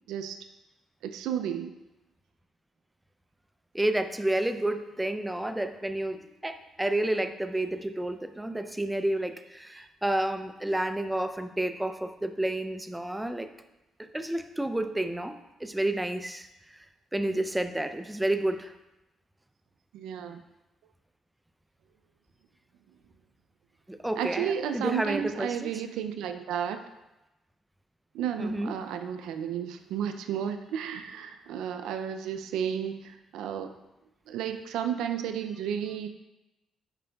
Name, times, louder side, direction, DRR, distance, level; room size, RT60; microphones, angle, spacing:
voice 1, 0.1-0.4 1.0-1.8 19.9-20.4 24.2-26.8 28.1-33.7 34.3-36.1, right 8 dB, 90° right, 8 dB, 0.3 m, -32 dB
voice 2, 3.7-13.5 14.0-16.8 17.1-18.7 23.9-25.7 28.4-28.7, right 1 dB, 10° right, 9 dB, 0.4 m, -30 dB
8.8 x 5.1 x 2.3 m, 0.98 s
cardioid pair, 90°, 0 cm